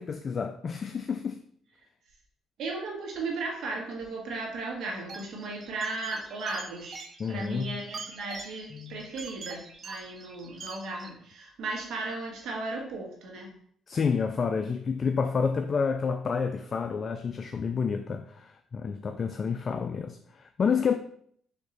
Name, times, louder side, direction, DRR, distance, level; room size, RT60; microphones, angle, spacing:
voice 1, 0.0-1.4 7.2-7.8 8.7-9.0 13.9-21.0, left 5 dB, 45° left, 0.3 m, -29 dB
voice 2, 2.6-13.5, right 3 dB, 70° right, 1.6 m, -36 dB
sound 1, 5.1-11.1, right 4 dB, 45° right, 0.6 m, -44 dB
4.4 x 3.0 x 3.9 m
cardioid pair, 80°, 0 cm